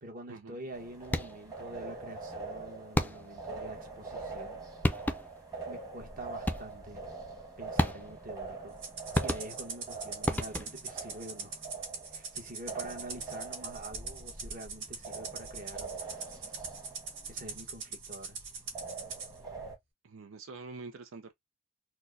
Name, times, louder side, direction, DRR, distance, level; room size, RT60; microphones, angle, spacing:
voice 1, 0.0-4.6 5.6-7.1 7.6-8.8 9.2-11.7 12.1-16.0 17.3-18.4, right 1 dB, 45° right, 1.2 m, -46 dB
sound 1, 0.7-19.8, right 3 dB, 20° right, 1.2 m, -44 dB
sound 2, 1.0-1.5 2.9-3.5 4.5-4.6 4.8-5.5 6.5-6.9 7.8-8.3 9.1-9.8 10.3-10.9, left 1 dB, 10° left, 0.5 m, -32 dB
Rattle (instrument), 8.8-19.3, right 5 dB, 65° right, 2.1 m, -42 dB
voice 2, 20.0-21.3, right 4 dB, 80° right, 0.6 m, -46 dB
4.3 x 2.1 x 2.6 m
head